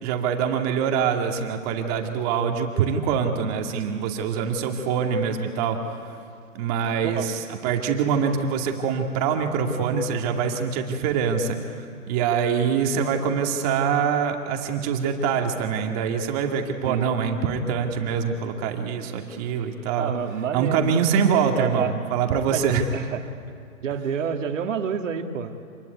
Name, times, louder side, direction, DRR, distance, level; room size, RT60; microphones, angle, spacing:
voice 1, 0.0-6.2 6.5-20.1 20.5-22.8, right 6 dB, 25° right, 3 dB, 2.3 m, -24 dB
voice 2, 7.0-7.3 16.9-17.1 20.0-20.9 21.5-22.0 22.5-23.2 23.8-25.6, right 7 dB, 55° right, 5 dB, 2.3 m, -28 dB
27.0 x 20.0 x 9.5 m, 2.4 s
hypercardioid pair, 150°, 44 cm